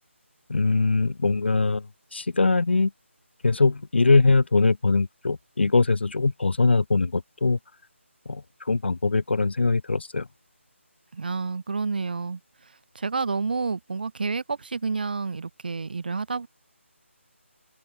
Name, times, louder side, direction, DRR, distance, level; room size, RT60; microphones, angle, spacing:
voice 1, 0.5-1.9 2.1-2.9 3.4-7.6 8.3-8.4 8.7-10.3, left 3 dB, 55° left, 0.6 m, -22 dB
voice 2, 11.1-12.4 12.9-16.5, right 4 dB, 45° right, 0.9 m, -29 dB
figure-of-eight pair, 155°, 7 cm